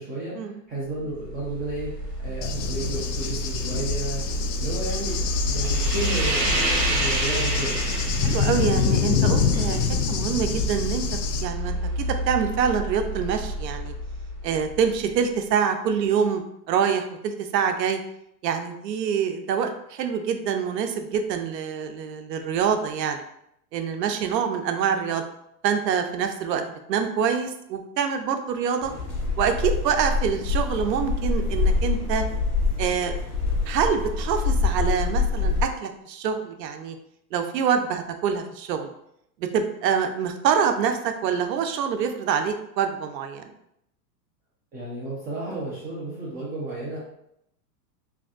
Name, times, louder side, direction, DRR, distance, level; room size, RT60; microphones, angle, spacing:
voice 1, 0.0-4.2 4.6-5.2 5.4-7.8 44.7-47.0, right 2 dB, 20° right, -6 dB, 0.5 m, -32 dB
sound 1, 1.0-15.1, equal, 70° right, 1.1 m, -28 dB
Cricket / Thunder, 2.4-11.4, left 7 dB, 85° left, 0.6 m, -27 dB
voice 2, 8.2-13.9 14.4-18.0 18.4-23.2 23.7-25.2 25.6-26.6 26.9-28.9 29.4-32.2 32.8-33.2 33.6-36.9 37.3-38.9 39.5-43.5, right 7 dB, 90° right, 7 dB, 0.6 m, -25 dB
sound 2, 28.8-35.6, left 4 dB, 30° left, 1.3 m, -25 dB
3.4 x 2.6 x 2.4 m, 0.77 s
hypercardioid pair, 130°, 49 cm